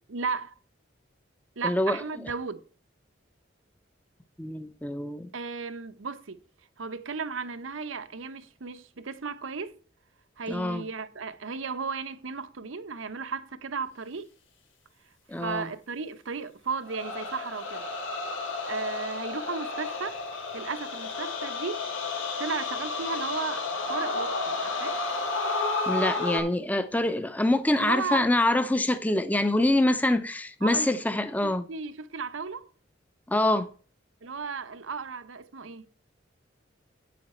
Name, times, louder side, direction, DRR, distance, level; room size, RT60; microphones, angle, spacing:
voice 1, 0.1-0.5 1.6-2.6 5.3-6.4 6.8-9.8 10.4-14.3 15.4-17.9 18.7-21.9 22.4-25.0 27.7-28.3 30.6-31.0 31.4-32.7 34.2-35.9, right 4 dB, 85° right, 0.8 m, -35 dB
voice 2, 1.6-2.0 4.4-5.3 10.5-10.8 15.3-15.7 25.9-31.7 33.3-33.7, left 1 dB, 10° left, 0.6 m, -25 dB
sound 1, 16.8-26.4, left 3 dB, 90° left, 3.4 m, -32 dB
9.3 x 8.6 x 4.3 m
head